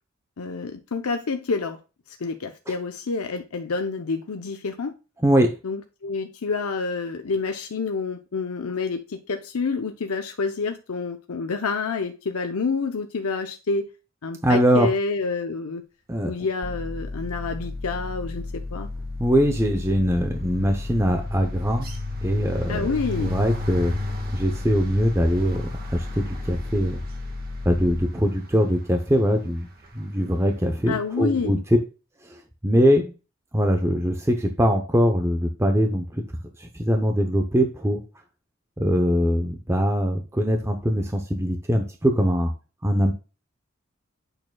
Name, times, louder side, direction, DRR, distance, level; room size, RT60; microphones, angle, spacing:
voice 1, 0.4-1.8 2.1-4.9 5.6-13.9 14.2-15.8 16.3-18.9 22.7-23.4 30.9-31.6, left 4 dB, 85° left, 5 dB, 0.7 m, -28 dB
voice 2, 5.2-5.5 14.4-14.9 16.1-16.3 19.2-21.9 22.2-23.9 24.3-25.6 25.9-27.0 27.6-29.7 29.9-31.6 32.3-33.1 33.5-36.2 36.6-38.0 38.8-42.5 42.8-43.1, equal, 10° right, 4 dB, 0.7 m, -22 dB
sound 1, 16.6-28.1, left 2 dB, 20° left, 0.3 m, -34 dB
sound 2, 17.2-17.5 17.8-30.9, left 1 dB, 45° right, 1.5 m, -37 dB
8.7 x 6.6 x 2.3 m, 0.31 s
head